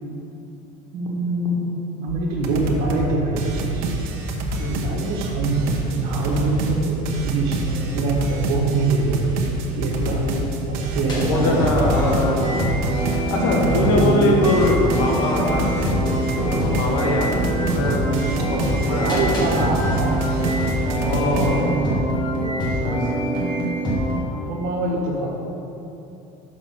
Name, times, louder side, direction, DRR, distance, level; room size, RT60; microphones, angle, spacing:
voice 1, 0.9-1.7 2.0-3.9 4.8-10.3 10.7-11.9 13.6-14.4 19.0-20.3 20.9-22.0 22.8-23.0 24.3-25.3, right 3 dB, 60° right, -3 dB, 1.5 m, -24 dB
sound 1, 2.1-2.2 2.4-3.1 3.4-21.5, right 2 dB, 80° right, 1.0 m, -27 dB
voice 2, 9.9-10.5 11.2-19.5 21.0-21.7 22.6-23.2, left 2 dB, 85° left, -1 dB, 1.6 m, -23 dB
sound 2, 10.9-24.2, right 1 dB, 25° left, 1.5 m, -24 dB
6.1 x 6.0 x 5.6 m, 2.8 s
cardioid pair, 160°, 18 cm